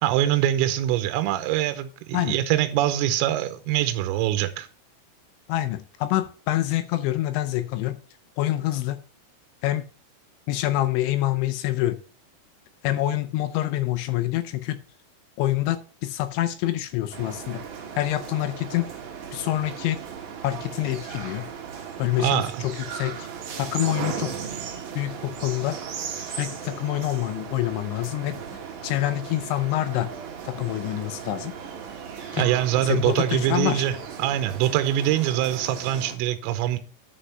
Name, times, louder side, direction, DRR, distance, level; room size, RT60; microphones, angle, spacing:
voice 1, 0.0-4.7 22.2-22.5 32.4-36.8, right 12 dB, 85° right, 3.3 m, -24 dB
voice 2, 5.5-8.0 8.4-9.0 9.6-9.9 10.5-12.0 12.8-14.8 15.4-17.6 18.0-18.9 19.3-20.0 20.4-21.4 22.0-23.3 23.6-24.3 25.0-25.8 26.3-28.4 28.8-30.1 30.5-31.5 32.3-32.4 32.9-33.8, left 14 dB, 80° left, 2.8 m, -26 dB
sound 1, 17.1-36.2, right 7 dB, 60° right, 2.2 m, -37 dB
9.8 x 5.5 x 5.6 m
omnidirectional pair, 5.9 m